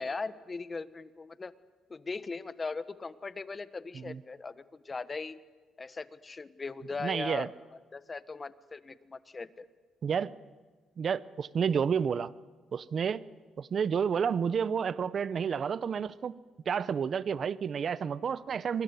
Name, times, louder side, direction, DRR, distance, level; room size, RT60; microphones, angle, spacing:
voice 1, 0.0-1.5 1.9-5.4 5.8-7.5 7.9-9.7, left 4 dB, 30° left, 14 dB, 1.2 m, -39 dB
voice 2, 7.0-7.5 10.0-10.3 11.0-12.3 12.7-13.2 13.6-16.4 16.7-18.8, right 7 dB, 50° right, 18 dB, 0.8 m, -30 dB
26.5 x 21.0 x 9.6 m, 1.4 s
cardioid pair, 90°, 0 cm